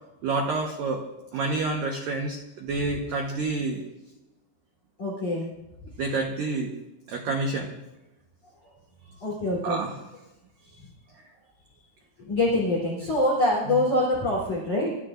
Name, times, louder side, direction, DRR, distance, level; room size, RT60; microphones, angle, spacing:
voice 1, 0.2-1.0 1.3-3.8 6.0-6.7 7.1-7.7 9.6-10.0 13.7-13.8, right 3 dB, 75° right, 1 dB, 2.0 m, -28 dB
voice 2, 5.0-5.5 9.2-9.8 12.2-14.9, left 1 dB, 35° left, -5 dB, 4.1 m, -25 dB
28.5 x 14.5 x 2.6 m, 0.98 s
omnidirectional pair, 5.9 m